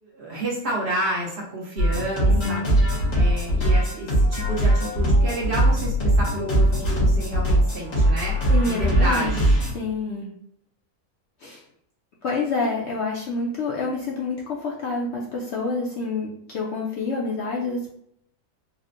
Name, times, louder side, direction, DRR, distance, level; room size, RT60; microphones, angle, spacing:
voice 1, 0.0-2.6 3.1-9.6, right 1 dB, 55° right, -3 dB, 1.0 m, -30 dB
sound 1, 1.8-9.7, right 1 dB, 85° left, 1.8 m, -20 dB
voice 2, 2.3-2.7 8.5-9.4 9.7-10.3 11.4-11.6 12.2-17.9, left 3 dB, 65° left, -3 dB, 0.7 m, -28 dB
4.2 x 2.1 x 2.5 m, 0.70 s
omnidirectional pair, 1.5 m